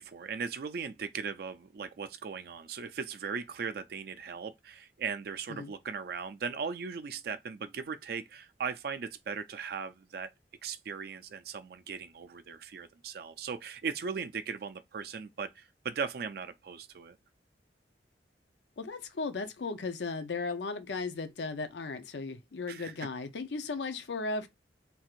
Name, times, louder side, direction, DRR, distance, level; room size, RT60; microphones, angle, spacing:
voice 1, 0.0-10.3 10.6-17.2 22.7-22.9, right 6 dB, 60° right, 0.4 m, -38 dB
voice 2, 18.8-24.5, left 3 dB, 80° left, 0.6 m, -36 dB
3.4 x 2.4 x 4.4 m
head